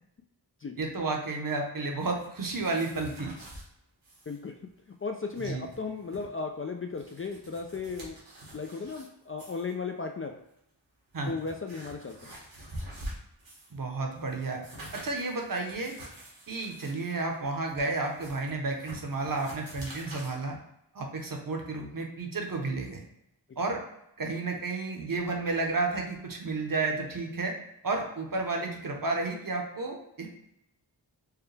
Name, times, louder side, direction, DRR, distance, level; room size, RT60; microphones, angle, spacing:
voice 1, 0.8-3.3 5.4-5.6 11.1-11.3 13.7-14.6 14.9-15.9 16.5-20.6 20.9-23.0 23.6-23.8 24.2-27.5 27.8-30.3, right 3 dB, 45° right, 1 dB, 0.8 m, -32 dB
sound 1, 2.1-3.7 4.0-4.4 4.6-4.7 5.2-6.2 6.8-9.1 9.4-9.7 10.5-10.6 11.1-13.8 14.1-20.3, right 1 dB, 85° right, 1.4 m, -46 dB
voice 2, 5.0-8.2 8.5-10.4 11.2-12.3, left 4 dB, 30° left, 3 dB, 0.3 m, -35 dB
4.8 x 2.2 x 3.3 m, 0.81 s
wide cardioid pair, 60°, 45 cm